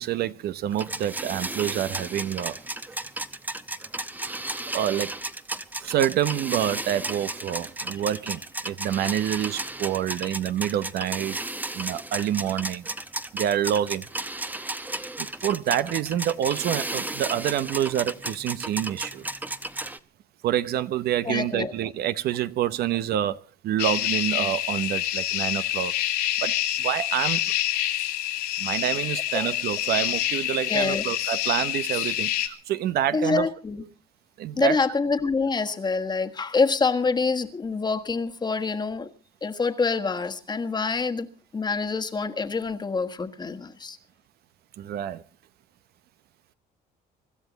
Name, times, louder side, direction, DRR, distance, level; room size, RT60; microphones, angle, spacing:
voice 1, 0.0-2.6 4.7-5.2 5.8-11.4 11.7-12.9 13.3-14.1 15.2-19.4 20.4-25.9 26.4-27.4 28.6-33.5 34.4-34.8 44.8-45.2, right 11 dB, 70° right, 0.8 m, -27 dB
sound 1, 0.7-20.0, right 2 dB, 10° right, 0.9 m, -33 dB
voice 2, 9.8-10.4 21.2-21.7 29.3-29.5 30.7-31.0 33.1-33.8 34.6-39.1 39.4-41.3 41.5-44.0, left 4 dB, 25° left, 1.5 m, -26 dB
sound 2, 23.8-32.5, left 13 dB, 80° left, 2.4 m, -27 dB
25.0 x 12.5 x 4.1 m
cardioid pair, 110°, 17 cm